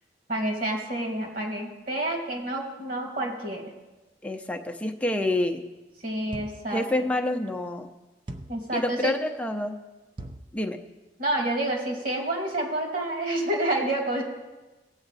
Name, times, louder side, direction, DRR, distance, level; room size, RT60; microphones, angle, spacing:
voice 1, 0.3-3.6 6.0-6.9 8.5-9.2 11.2-14.2, right 1 dB, 50° right, 1 dB, 2.4 m, -28 dB
voice 2, 4.2-5.6 6.7-7.9 8.7-9.8 10.5-10.8, left 1 dB, 10° left, 4 dB, 0.7 m, -27 dB
sound 1, 6.3-6.8 8.3-8.7 10.2-10.6, right 1 dB, 30° right, 0.6 m, -40 dB
17.0 x 8.1 x 4.1 m, 1.1 s
head